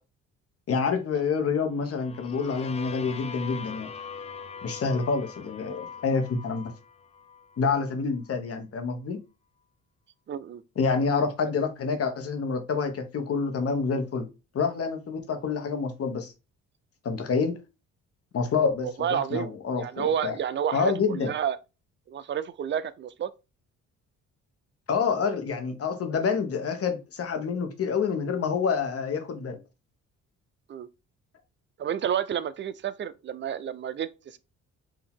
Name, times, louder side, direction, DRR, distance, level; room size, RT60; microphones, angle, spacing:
voice 1, 0.7-3.9 4.6-6.7 7.6-9.2 10.8-14.3 14.5-16.3 17.0-17.6 18.3-20.4 20.7-21.3 24.9-29.6, left 5 dB, 50° left, 1.1 m, -27 dB
sound 1, 1.8-7.6, left 6 dB, 20° left, 0.5 m, -42 dB
voice 2, 10.3-10.6 19.0-19.5 19.8-21.6 22.1-23.3 30.7-30.9 31.8-34.4, right 9 dB, 40° right, 0.5 m, -30 dB
4.8 x 2.7 x 3.6 m
cardioid pair, 90°, 30 cm